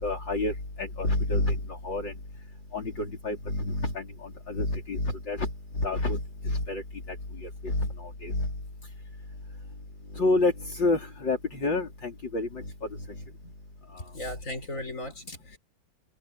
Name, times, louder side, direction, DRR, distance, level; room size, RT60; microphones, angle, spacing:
voice 1, 0.0-1.6 1.8-2.1 2.7-5.5 5.8-6.2 6.4-6.8 7.4-8.5 10.2-12.6, left 2 dB, 60° left, 4.9 m, -28 dB
voice 2, 14.1-15.6, left 1 dB, 35° left, 6.4 m, -36 dB
open air
omnidirectional pair, 2.3 m